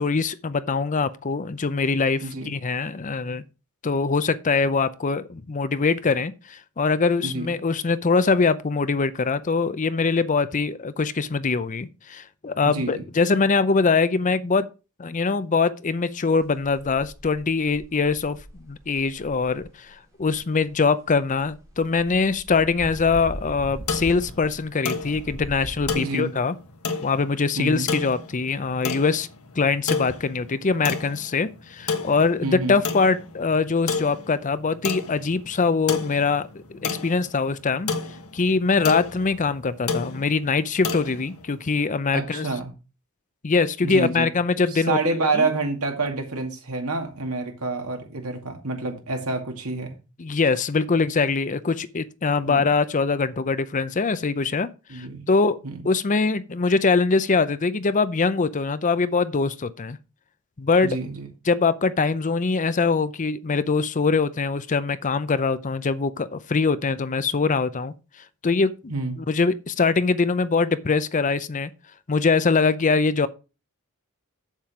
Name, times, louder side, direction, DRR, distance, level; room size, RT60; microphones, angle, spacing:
voice 1, 0.0-3.4 3.8-14.7 15.0-18.4 18.7-26.5 27.0-29.3 29.6-37.9 38.3-42.5 43.4-45.5 50.2-54.7 54.9-55.6 55.8-60.0 60.6-61.0 61.5-67.9 68.4-68.7 69.2-71.7 72.1-73.3, left 4 dB, 35° left, 0.6 m, -23 dB
voice 2, 2.2-2.5 7.2-7.5 12.6-13.0 26.0-26.3 27.5-27.9 32.4-32.8 42.1-42.7 43.8-44.3 44.7-50.0 52.5-52.7 54.9-55.3 55.6-55.8 60.8-61.3 68.9-69.2, right 3 dB, 75° right, 2.2 m, -28 dB
sound 1, 16.3-19.7 20.2-20.4 20.6-24.6 25.0-25.9, right 1 dB, 15° right, 3.0 m, -40 dB
sound 2, 23.1-41.8, left 4 dB, 75° left, 1.4 m, -32 dB
7.7 x 7.3 x 4.9 m
head